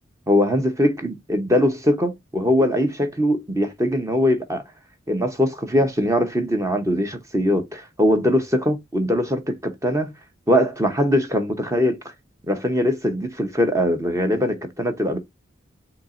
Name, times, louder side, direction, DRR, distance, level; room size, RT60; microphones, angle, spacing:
voice 1, 0.3-4.6 5.1-10.1 10.5-12.0 12.5-15.2, equal, 15° right, 0.8 m, -21 dB
7.1 x 2.8 x 2.5 m
head